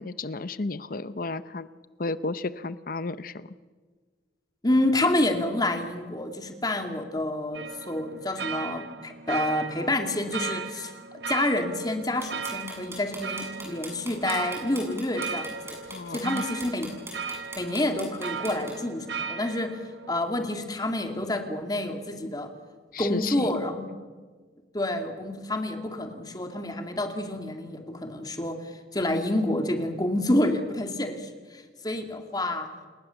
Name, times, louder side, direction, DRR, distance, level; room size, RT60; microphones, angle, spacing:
voice 1, 0.0-1.7 2.0-3.5 15.9-16.4 22.9-23.5, left 3 dB, 50° left, 14 dB, 0.7 m, -33 dB
voice 2, 4.6-10.9 11.3-15.8 16.1-16.9 17.6-19.8 20.1-22.5 23.0-23.9 24.7-32.7, left 1 dB, 20° left, 5 dB, 2.4 m, -28 dB
sound 1, 7.5-20.1, right 5 dB, 70° right, 1.1 m, -37 dB
sound 2, 12.2-18.7, right 1 dB, 15° right, 7.2 m, -40 dB
29.0 x 19.5 x 7.1 m, 1.4 s
head